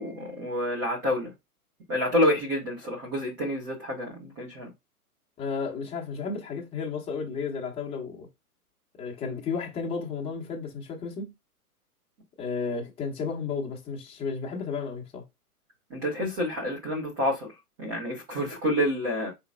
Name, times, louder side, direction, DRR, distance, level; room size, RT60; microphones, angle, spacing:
voice 1, 0.0-1.3 1.9-4.7 15.9-17.5 17.8-19.3, left 1 dB, 15° right, 0.5 m, -28 dB
voice 2, 5.4-8.3 9.0-11.3 12.4-15.2, left 5 dB, 15° left, 0.9 m, -33 dB
4.1 x 3.9 x 2.3 m
figure-of-eight pair, 125°, 46 cm